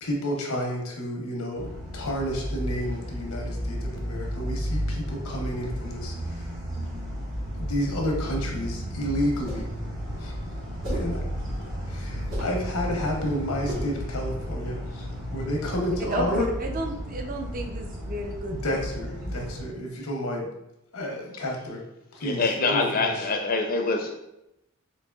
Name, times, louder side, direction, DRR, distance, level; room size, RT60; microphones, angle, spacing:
voice 1, 0.0-6.5 7.5-9.7 10.2-10.3 10.9-11.2 11.8-16.5 18.5-20.5 20.9-21.8 22.1-23.3, equal, 85° left, 0 dB, 0.8 m, -30 dB
sound 1, 1.6-19.6, equal, 20° right, 0.8 m, -33 dB
sound 2, 9.3-9.8 10.8-11.2 12.2-12.6 13.7-14.0, equal, 65° right, 1.4 m, -33 dB
voice 2, 16.6-18.8 19.2-19.3, right 1 dB, 40° right, 2 dB, 0.5 m, -33 dB
voice 3, 22.2-24.1, left 3 dB, 40° left, 3 dB, 0.5 m, -25 dB
4.0 x 2.8 x 2.3 m, 0.86 s
head